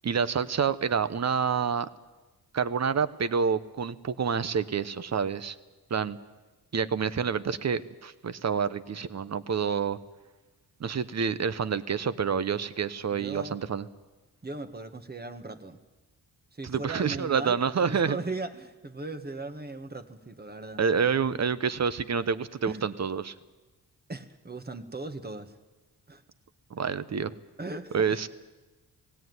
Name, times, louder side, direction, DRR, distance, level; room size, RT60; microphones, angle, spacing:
voice 1, 0.0-1.9 2.5-5.5 5.9-6.2 6.7-10.0 10.8-13.9 16.6-18.2 20.8-23.3 26.7-27.4 27.9-28.3, right 6 dB, 40° right, 14 dB, 1.0 m, -28 dB
voice 2, 13.1-13.6 14.4-15.8 16.5-20.8 21.1-21.4 22.6-22.9 24.1-25.6 26.1-26.2 27.6-28.2, right 2 dB, 25° right, 8 dB, 1.6 m, -38 dB
18.5 x 17.0 x 9.6 m, 1.2 s
cardioid pair, 90°, 40 cm